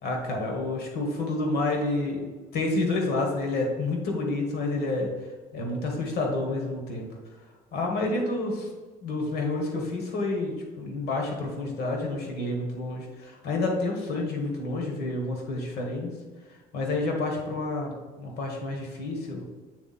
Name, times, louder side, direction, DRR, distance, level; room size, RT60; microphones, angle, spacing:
voice 1, 0.0-5.1 5.5-7.1 7.7-8.7 9.0-16.1 16.7-19.4, left 2 dB, 70° left, 1 dB, 1.6 m, -29 dB
8.4 x 3.5 x 4.3 m, 1.3 s
cardioid pair, 110°, 17 cm